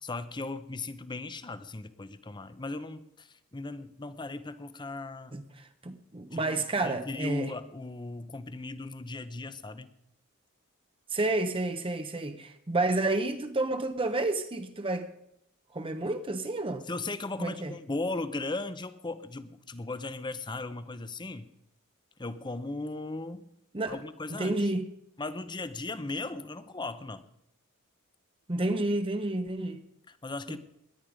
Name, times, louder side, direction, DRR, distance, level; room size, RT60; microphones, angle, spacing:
voice 1, 0.0-5.4 6.3-9.9 16.9-21.5 22.2-23.5 23.9-24.7 25.2-27.3 30.1-30.6, left 2 dB, 20° left, 0.7 m, -37 dB
voice 2, 5.3-7.5 11.1-15.1 15.7-16.9 17.4-17.7 23.7-24.0 24.3-24.9 28.5-29.8 30.5-30.6, right 2 dB, 25° right, 0.8 m, -30 dB
18.0 x 11.0 x 5.0 m
head